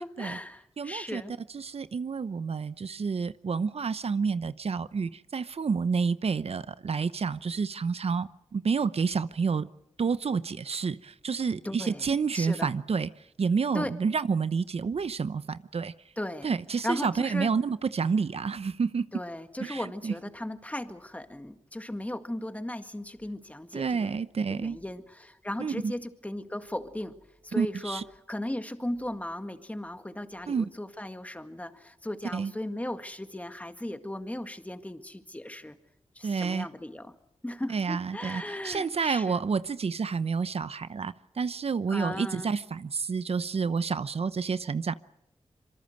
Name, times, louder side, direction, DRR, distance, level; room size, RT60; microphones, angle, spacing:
voice 1, 0.0-1.3 11.6-12.1 12.3-12.7 13.7-14.0 16.2-16.5 16.8-17.5 19.1-24.2 24.5-27.2 27.4-28.0 28.3-35.8 36.2-37.1 37.4-39.4 41.9-42.5, left 1 dB, 15° left, 1.9 m, -36 dB
voice 2, 0.8-1.2 1.5-9.7 10.0-13.1 13.4-15.9 16.4-19.1 19.6-20.1 23.7-24.8 25.6-25.9 27.6-28.0 30.5-30.7 32.3-32.5 36.2-36.7 37.7-44.9, right 5 dB, 65° right, 0.8 m, -29 dB
26.0 x 23.5 x 6.6 m
cardioid pair, 65°, 11 cm